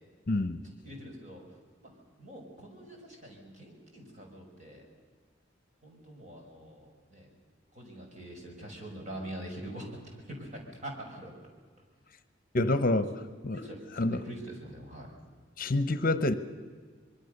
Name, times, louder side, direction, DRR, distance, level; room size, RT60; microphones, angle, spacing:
voice 1, 0.3-0.6 12.5-13.1 13.4-13.6 14.0-14.2 15.6-16.3, left 2 dB, 45° left, 13 dB, 0.9 m, -27 dB
voice 2, 0.8-1.4 1.8-1.9 2.2-4.9 5.8-7.3 7.7-11.3 13.1-13.2 13.5-15.1, right 1 dB, 40° right, 0 dB, 6.0 m, -44 dB
25.0 x 22.5 x 6.7 m, 1.5 s
head